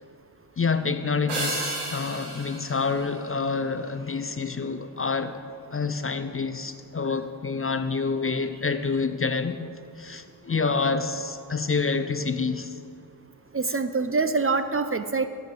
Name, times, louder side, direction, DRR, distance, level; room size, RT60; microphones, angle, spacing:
voice 1, 0.6-5.4 5.7-9.7 10.0-12.8, left 4 dB, 30° left, 0.6 m, -27 dB
sound 1, 1.3-3.9, right 1 dB, 80° right, 2.8 m, -33 dB
voice 2, 13.5-15.3, right 4 dB, 30° right, 0.6 m, -25 dB
12.5 x 7.1 x 5.9 m
cardioid pair, 50°, 48 cm